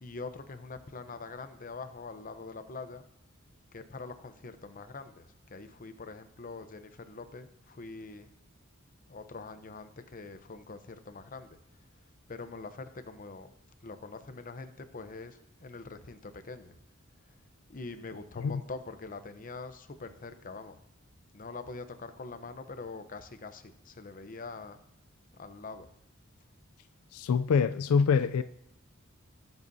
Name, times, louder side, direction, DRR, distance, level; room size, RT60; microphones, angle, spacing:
voice 1, 0.0-3.0 3.7-8.3 9.1-11.6 12.3-13.5 13.8-16.7 17.7-20.8 21.3-24.8 25.4-25.9, left 3 dB, 40° left, 9 dB, 0.7 m, -44 dB
voice 2, 27.1-28.4, left 6 dB, 85° left, 12 dB, 0.3 m, -25 dB
20.0 x 8.0 x 2.7 m, 0.82 s
head